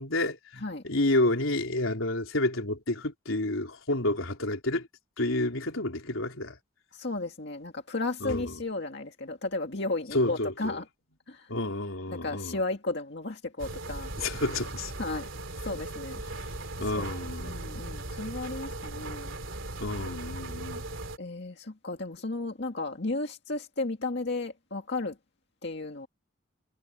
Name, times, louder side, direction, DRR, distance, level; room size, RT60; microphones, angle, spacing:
voice 1, 0.0-4.9 5.2-6.6 8.2-8.6 10.1-10.8 11.5-12.6 14.2-14.9 16.8-17.7 19.8-20.8, left 2 dB, 85° left, 3.7 m, -30 dB
voice 2, 6.9-10.9 11.3-11.5 12.1-14.1 15.0-15.3 15.6-16.2 16.9-19.3 21.2-25.2 25.6-26.1, left 2 dB, 55° left, 2.0 m, -34 dB
sound 1, 13.6-21.2, right 2 dB, 70° right, 2.9 m, -38 dB
head